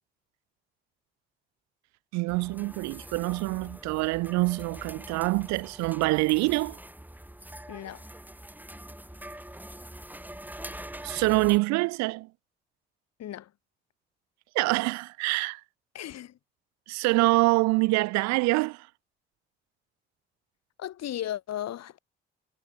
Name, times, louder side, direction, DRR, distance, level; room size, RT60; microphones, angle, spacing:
voice 1, 2.1-6.8 11.0-12.3 14.5-15.6 16.9-18.9, right 23 dB, 65° right, 0.5 m, -25 dB
sound 1, 2.3-11.6, right 1 dB, 5° right, 2.7 m, -44 dB
voice 2, 7.7-8.1 13.2-13.5 15.9-16.4 20.8-22.0, left 11 dB, 60° left, 2.1 m, -36 dB
figure-of-eight pair, 40°, 30 cm